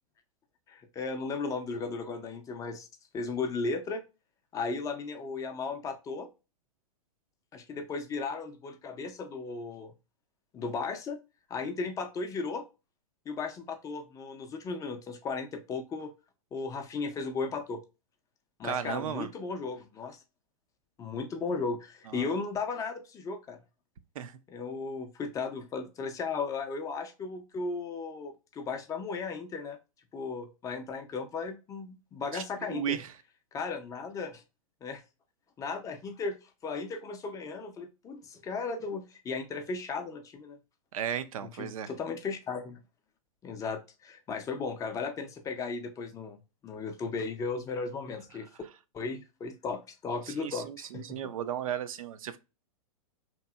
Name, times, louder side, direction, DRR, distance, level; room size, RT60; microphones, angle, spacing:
voice 1, 0.7-2.9 3.1-4.0 4.5-6.3 7.5-9.9 10.5-11.2 11.5-12.6 13.3-16.1 16.5-17.8 18.6-20.2 21.0-23.6 24.5-29.8 30.1-33.0 33.5-34.4 34.8-35.0 35.6-40.6 41.4-42.8 43.4-46.4 46.6-48.5 48.9-51.2, left 4 dB, 15° left, 0.4 m, -36 dB
voice 2, 18.6-19.3 22.1-22.3 24.2-24.3 32.3-33.1 40.9-41.9 50.4-52.4, right 9 dB, 65° right, 0.4 m, -35 dB
2.8 x 2.6 x 2.3 m
hypercardioid pair, 110°, 20 cm